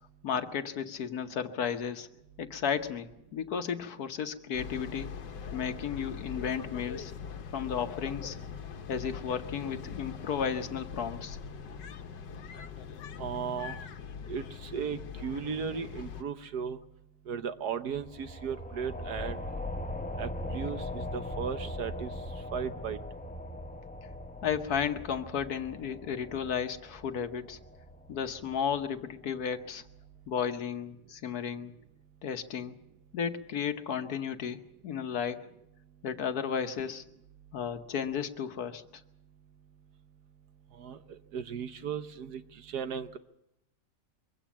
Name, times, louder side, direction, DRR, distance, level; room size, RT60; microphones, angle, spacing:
voice 1, 0.2-2.1 2.4-5.1 5.5-7.1 7.5-8.4 8.9-11.4 24.4-27.6 28.1-29.8 30.3-31.7 32.2-32.8 33.1-35.5 36.0-37.0 37.5-38.8, left 7 dB, 65° left, 8 dB, 1.4 m, -33 dB
sound 1, 4.5-16.2, left 7 dB, 90° left, 1.6 m, -42 dB
voice 2, 13.2-13.8 14.3-16.8 17.3-19.4 20.2-22.1 22.5-23.0 40.8-41.0 41.3-43.2, right 7 dB, 70° right, 10 dB, 1.5 m, -36 dB
sound 2, 17.9-29.1, left 1 dB, 10° left, 0.5 m, -40 dB
23.0 x 16.0 x 7.4 m, 0.83 s
omnidirectional pair, 1.8 m